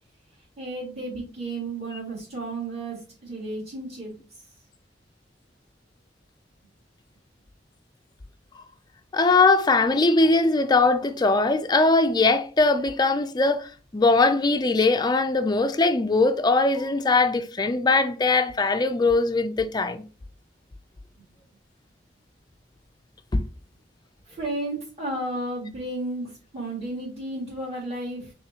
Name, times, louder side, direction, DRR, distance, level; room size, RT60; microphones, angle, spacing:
voice 1, 0.6-4.1 24.3-28.3, right 2 dB, 40° right, 2.3 m, -33 dB
voice 2, 9.1-20.0 23.3-23.4, left 3 dB, 25° left, 0.4 m, -21 dB
5.9 x 3.1 x 2.9 m
head